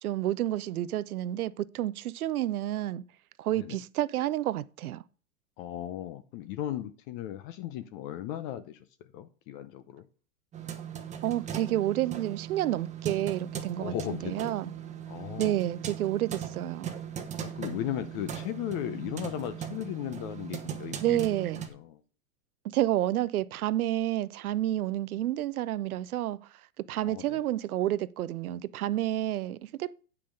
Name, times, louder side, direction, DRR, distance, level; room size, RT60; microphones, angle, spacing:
voice 1, 0.0-3.0 3.4-5.0 11.2-14.7 15.4-16.9 21.0-21.6 22.7-26.4 26.9-29.9, right 13 dB, 80° right, 0.6 m, -30 dB
voice 2, 5.6-8.8 9.1-10.0 13.8-14.5 15.1-15.5 17.4-21.2 21.7-22.0 27.0-27.4, left 12 dB, 40° left, 0.7 m, -36 dB
sound 1, 10.5-21.7, right 8 dB, 15° right, 1.0 m, -39 dB
8.4 x 5.8 x 5.1 m
hypercardioid pair, 125°, 43 cm